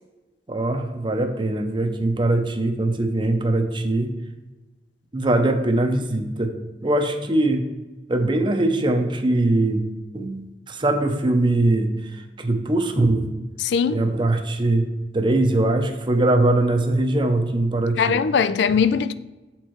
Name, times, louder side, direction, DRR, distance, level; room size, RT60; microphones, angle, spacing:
voice 1, 0.5-4.1 5.1-6.5 6.8-7.6 8.1-9.8 10.1-13.3 13.9-14.9 15.1-18.2, right 2 dB, 30° right, 0.7 m, -21 dB
voice 2, 13.6-14.0 18.0-19.1, left 6 dB, 75° left, 0.4 m, -20 dB
7.5 x 4.5 x 4.6 m
head